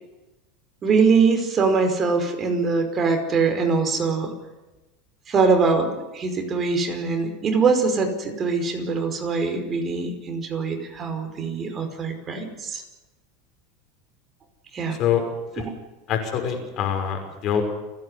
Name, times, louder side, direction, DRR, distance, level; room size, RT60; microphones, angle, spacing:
voice 1, 0.8-4.3 5.3-12.8 14.7-15.0 15.6-15.7, right 4 dB, 30° right, 5 dB, 5.1 m, -23 dB
voice 2, 16.1-17.6, left 9 dB, 50° left, 5 dB, 5.9 m, -24 dB
30.0 x 10.5 x 9.9 m, 1.1 s
supercardioid pair, 110°, 0 cm